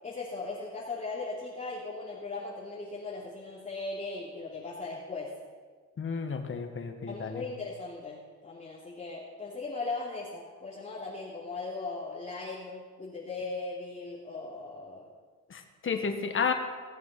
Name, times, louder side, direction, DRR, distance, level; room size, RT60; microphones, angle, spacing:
voice 1, 0.0-5.3 7.1-15.1, left 3 dB, 25° left, -8 dB, 3.0 m, -38 dB
voice 2, 6.0-7.4 15.5-16.5, left 5 dB, 40° left, 5 dB, 1.7 m, -32 dB
18.0 x 7.4 x 5.9 m, 1.5 s
cardioid pair, 90°, 30 cm